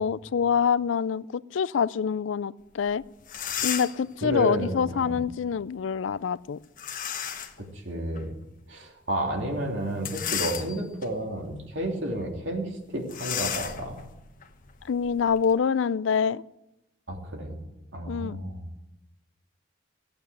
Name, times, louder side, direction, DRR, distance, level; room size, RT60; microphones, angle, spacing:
voice 1, 0.0-3.0 3.6-6.6 14.9-16.4 18.0-18.4, left 6 dB, 90° left, 20 dB, 0.4 m, -26 dB
sound 1, 2.9-3.0 3.2-4.1 6.8-7.6 8.2-8.3 9.9-11.0 11.6-11.8 12.1-12.2 13.1-15.5, left 9 dB, 45° left, 1.1 m, -33 dB
voice 2, 4.2-5.1 7.7-8.3 8.7-14.0 17.1-17.6 17.9-18.6, right 1 dB, 75° right, 1 dB, 2.9 m, -31 dB
15.5 x 8.7 x 8.1 m, 0.91 s
head